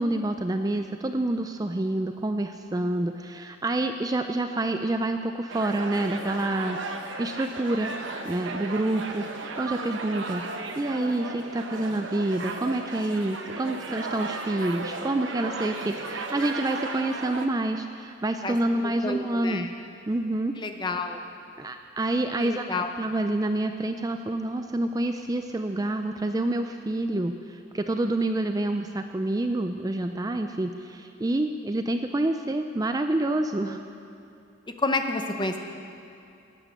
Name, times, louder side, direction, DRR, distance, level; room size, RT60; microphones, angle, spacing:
voice 1, 0.0-6.8 7.2-7.9 8.2-10.4 10.8-19.7 20.1-20.6 21.6-33.8, right 1 dB, 20° right, 6 dB, 0.4 m, -28 dB
sound 1, 5.5-17.5, right 3 dB, 75° right, 1.1 m, -35 dB
voice 2, 18.8-19.7 20.6-21.2 22.4-22.9 34.8-35.6, left 3 dB, 25° left, 5 dB, 0.8 m, -29 dB
17.5 x 8.9 x 6.5 m, 2.7 s
head